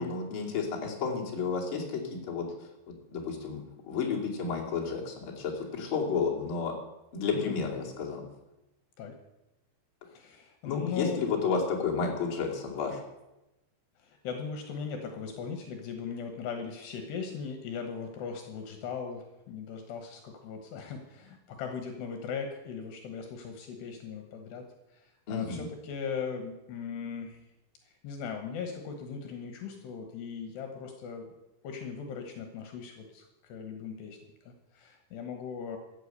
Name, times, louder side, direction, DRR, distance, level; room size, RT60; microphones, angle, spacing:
voice 1, 0.0-2.0 2.3-2.5 2.9-6.7 7.1-8.2 10.6-13.0 25.3-25.7, left 5 dB, 35° left, -2 dB, 2.8 m, -31 dB
voice 2, 10.1-11.3 14.0-27.4 27.9-31.3 31.6-34.2 34.5-35.8, left 6 dB, 70° left, 5 dB, 3.2 m, -39 dB
14.0 x 8.2 x 8.1 m, 0.96 s
omnidirectional pair, 5.3 m